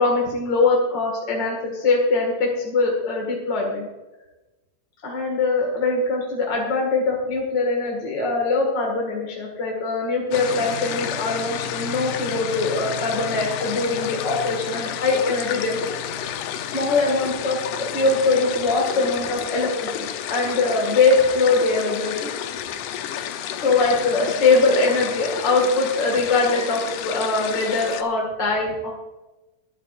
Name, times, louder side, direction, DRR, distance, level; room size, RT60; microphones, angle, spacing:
voice 1, 0.0-3.9 5.0-15.8 16.7-17.6 17.9-22.3 23.6-28.9, left 3 dB, 40° left, -1 dB, 1.9 m, -22 dB
sound 1, 10.3-28.0, left 9 dB, 80° left, 1.8 m, -31 dB
20.5 x 11.5 x 2.6 m, 1.1 s
omnidirectional pair, 4.5 m